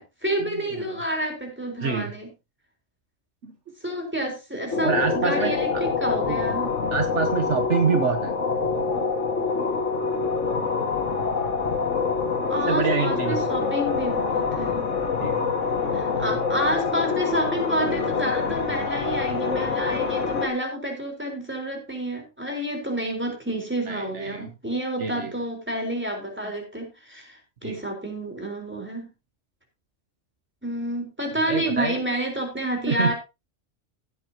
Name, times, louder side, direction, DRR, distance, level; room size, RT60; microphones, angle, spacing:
voice 1, 0.0-2.3 3.8-6.7 12.5-14.9 15.9-29.1 30.6-33.1, right 1 dB, 10° right, 2 dB, 4.2 m, -29 dB
voice 2, 1.8-2.1 3.4-3.5 4.8-5.5 6.3-6.4 6.9-8.3 12.7-13.7 15.2-15.4 23.9-24.5 25.0-25.3 27.6-27.8 31.5-32.0 32.9-33.1, right 6 dB, 70° right, 7 dB, 1.4 m, -26 dB
sound 1, 4.7-20.5, left 5 dB, 70° left, 2.2 m, -25 dB
16.0 x 8.6 x 2.9 m, 0.27 s
omnidirectional pair, 1.3 m